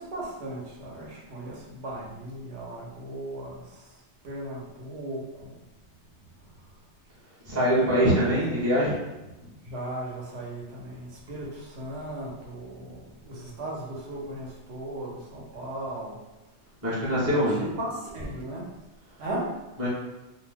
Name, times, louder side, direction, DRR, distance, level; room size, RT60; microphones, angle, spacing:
voice 1, 0.0-5.6 7.5-7.9 9.6-16.2 17.5-18.7 19.2-19.6, right 1 dB, 70° right, -3 dB, 1.0 m, -37 dB
voice 2, 7.5-9.0 16.8-17.6 19.8-19.9, equal, 15° right, -9 dB, 0.7 m, -23 dB
2.5 x 2.1 x 3.3 m, 1.0 s
omnidirectional pair, 1.2 m